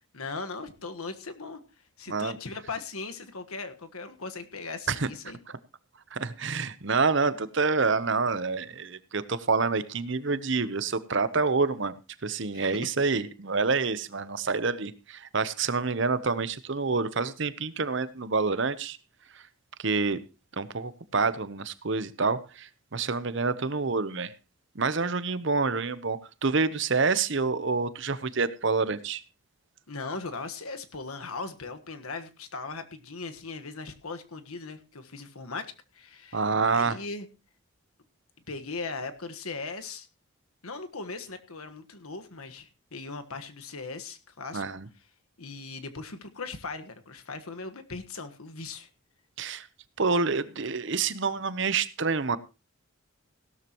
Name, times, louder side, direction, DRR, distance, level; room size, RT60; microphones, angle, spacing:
voice 1, 0.1-1.6 2.0-5.4 12.5-13.0 29.9-37.3 38.5-40.1 40.6-44.6 45.4-48.9, left 4 dB, 85° left, 1.5 m, -39 dB
voice 2, 6.1-11.9 12.2-19.0 19.3-19.4 19.8-20.2 20.6-24.3 24.7-29.2 36.3-37.0 44.5-44.9 49.4-49.7 50.0-52.4, right 4 dB, 55° right, 0.8 m, -27 dB
16.5 x 12.5 x 3.0 m
head